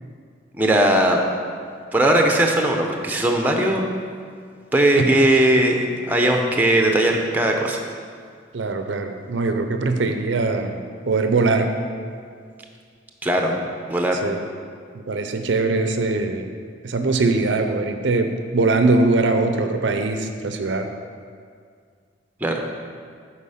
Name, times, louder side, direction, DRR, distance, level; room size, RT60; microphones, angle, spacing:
voice 1, 0.6-1.2 1.9-3.8 4.7-7.8 13.2-13.6 13.9-14.2 22.4-22.6, right 1 dB, 10° right, 2 dB, 0.6 m, -19 dB
voice 2, 8.5-10.8 11.1-11.7 14.2-14.4 15.1-16.5 16.8-20.9, right 3 dB, 65° right, 6 dB, 0.6 m, -21 dB
8.2 x 4.8 x 5.6 m, 2.1 s
head